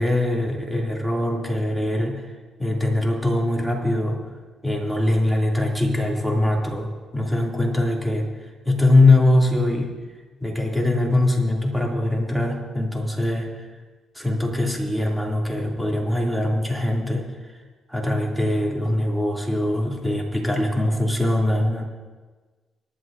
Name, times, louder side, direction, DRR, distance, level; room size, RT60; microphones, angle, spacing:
voice 1, 0.0-2.3 2.6-4.3 4.6-9.9 10.4-13.7 14.1-17.3 17.9-21.8, left 1 dB, 5° right, -2 dB, 2.5 m, -22 dB
25.0 x 11.0 x 2.6 m, 1.3 s
cardioid pair, 90°, 0 cm